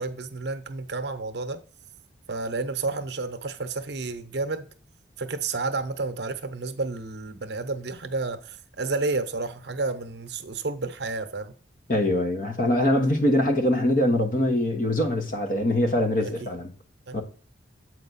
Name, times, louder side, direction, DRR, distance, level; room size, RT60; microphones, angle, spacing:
voice 1, 0.0-1.6 2.3-4.7 5.2-11.5 16.2-16.3 17.1-17.2, right 3 dB, 65° right, 0.8 m, -31 dB
voice 2, 11.9-16.7 17.1-17.2, left 1 dB, 45° left, 1.1 m, -23 dB
7.6 x 4.7 x 4.0 m
head